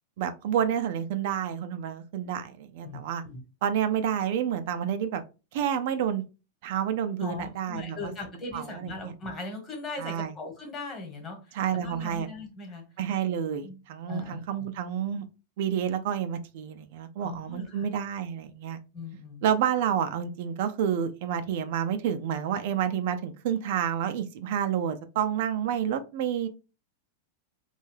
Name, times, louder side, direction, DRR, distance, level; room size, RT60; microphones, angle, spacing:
voice 1, 0.2-3.2 3.6-5.2 5.5-6.2 6.6-8.1 8.5-9.1 10.0-10.3 11.5-12.3 13.0-15.2 15.6-18.8 19.4-26.5, right 9 dB, 60° right, 9 dB, 0.4 m, -29 dB
voice 2, 2.8-3.4 7.2-12.8 13.6-13.7 14.1-14.7 17.2-17.9 18.9-19.4, left 2 dB, 25° left, 3 dB, 1.1 m, -39 dB
2.7 x 2.2 x 3.2 m, 0.31 s
supercardioid pair, 135°, 0 cm